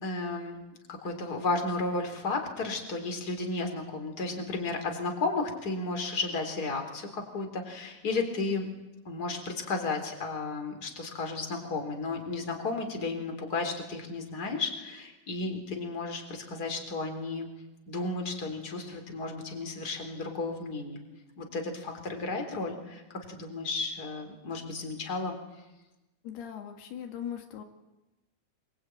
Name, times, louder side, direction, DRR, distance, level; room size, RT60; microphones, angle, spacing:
voice 1, 0.0-8.7 9.1-17.5 17.9-21.0 21.4-23.0 23.3-25.4, left 3 dB, 25° left, 4 dB, 3.9 m, -33 dB
voice 2, 26.2-27.6, left 9 dB, 80° left, 4 dB, 3.8 m, -39 dB
25.5 x 24.0 x 9.2 m, 1.0 s
omnidirectional pair, 4.6 m